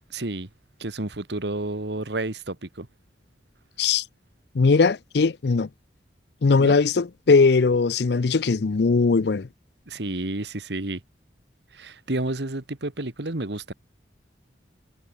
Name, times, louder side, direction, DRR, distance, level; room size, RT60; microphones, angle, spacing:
voice 1, 0.1-0.5 0.8-2.9 6.6-6.8 9.9-11.0 11.7-13.7, right 2 dB, 65° right, 1.7 m, -30 dB
voice 2, 4.5-5.7 6.4-9.5, left 4 dB, 60° left, 0.5 m, -20 dB
head